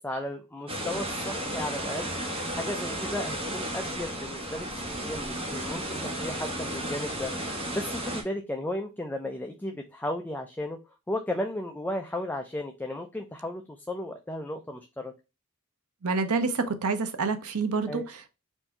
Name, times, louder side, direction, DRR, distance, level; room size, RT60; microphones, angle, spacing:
voice 1, 0.0-2.1 2.5-4.7 5.0-7.3 7.7-10.8 11.1-15.1 17.9-18.0, left 1 dB, 10° left, 0.4 m, -34 dB
sound 1, 0.7-8.2, right 1 dB, 25° right, 1.2 m, -33 dB
voice 2, 16.0-18.3, right 4 dB, 75° right, 0.7 m, -28 dB
4.4 x 2.7 x 4.2 m
head